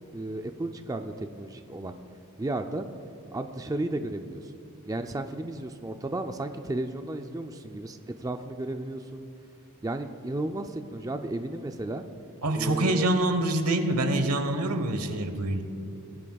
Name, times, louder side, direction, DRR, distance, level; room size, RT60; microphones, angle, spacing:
voice 1, 0.1-2.0 2.4-2.9 3.3-4.5 4.9-9.3 9.8-12.0 12.5-13.1, right 2 dB, 15° right, 6 dB, 0.4 m, -33 dB
voice 2, 12.4-15.6, right 1 dB, 80° right, 8 dB, 1.1 m, -25 dB
19.0 x 12.0 x 2.3 m, 2.8 s
head